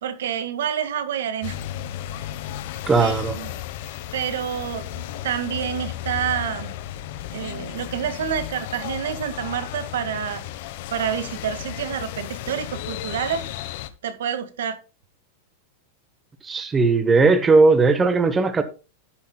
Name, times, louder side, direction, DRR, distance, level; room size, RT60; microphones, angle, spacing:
voice 1, 0.0-1.6 3.0-3.5 4.1-6.7 7.3-10.4 10.9-13.4 14.0-14.8, right 9 dB, 90° right, 1.9 m, -28 dB
sound 1, 1.4-13.9, left 12 dB, 50° left, 1.1 m, -34 dB
voice 2, 2.9-3.4 16.4-18.6, right 3 dB, 10° right, 1.0 m, -17 dB
12.0 x 10.0 x 2.3 m
supercardioid pair, 165°, 0 cm